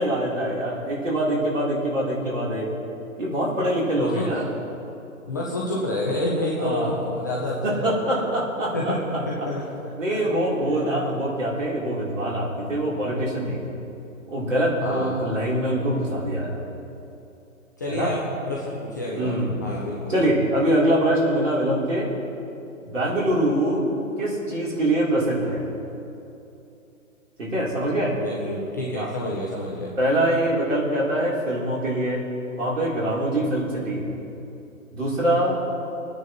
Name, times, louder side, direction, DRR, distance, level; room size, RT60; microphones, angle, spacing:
voice 1, 0.0-2.7 3.2-4.5 6.6-7.1 7.6-9.2 10.0-13.6 14.3-16.6 17.9-18.1 19.1-19.7 20.1-22.1 22.9-23.9 24.2-25.6 27.4-28.2 29.0-29.1 30.0-32.2 32.6-34.1 34.9-35.6, right 1 dB, 60° right, -5 dB, 3.5 m, -24 dB
voice 2, 4.0-4.3 5.3-8.2 8.7-9.7 10.1-10.3 10.7-11.0 14.8-15.4 17.8-20.1 28.2-29.9, left 1 dB, 15° left, -5 dB, 0.5 m, -29 dB
24.0 x 9.4 x 3.0 m, 2.8 s
figure-of-eight pair, 130°, 41 cm